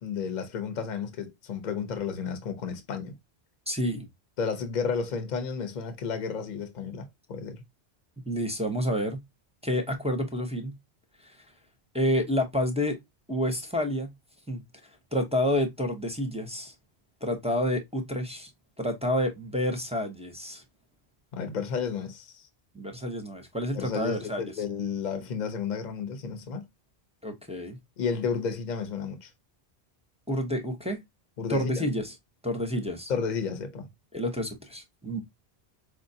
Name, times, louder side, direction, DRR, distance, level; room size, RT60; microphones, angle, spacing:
voice 1, 0.0-3.1 4.4-7.6 21.3-22.5 23.7-26.7 28.0-29.3 31.4-31.9 33.1-33.9, left 6 dB, 50° left, 0.7 m, -32 dB
voice 2, 3.7-4.1 8.3-9.2 9.6-10.8 11.2-11.4 11.9-13.0 13.3-14.1 14.5-14.6 15.1-16.7 17.2-18.5 18.8-20.6 22.7-24.4 27.2-27.8 30.3-31.0 31.5-32.1 32.4-33.1 34.1-35.2, equal, 10° right, 0.5 m, -29 dB
4.7 x 2.2 x 2.5 m
omnidirectional pair, 1.1 m